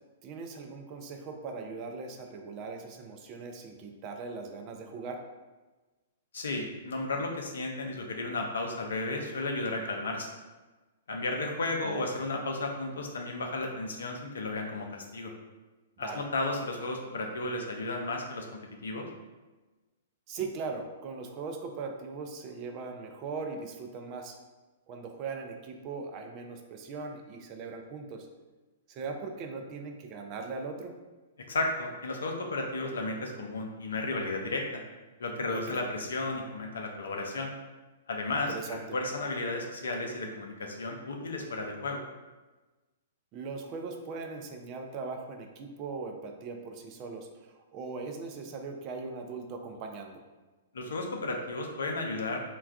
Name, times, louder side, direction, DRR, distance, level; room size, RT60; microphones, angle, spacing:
voice 1, 0.2-5.2 11.8-12.1 16.0-16.3 20.3-24.4 24.9-28.3 28.9-30.9 35.5-35.8 38.3-39.0 43.3-50.2, right 4 dB, 35° right, 3 dB, 0.4 m, -39 dB
voice 2, 6.3-10.3 11.1-15.3 16.0-18.5 18.8-19.1 31.5-34.8 35.2-37.5 38.1-42.0 50.7-52.4, left 2 dB, 70° left, 2 dB, 0.5 m, -33 dB
2.3 x 2.2 x 3.5 m, 1.2 s
figure-of-eight pair, 110°, 0 cm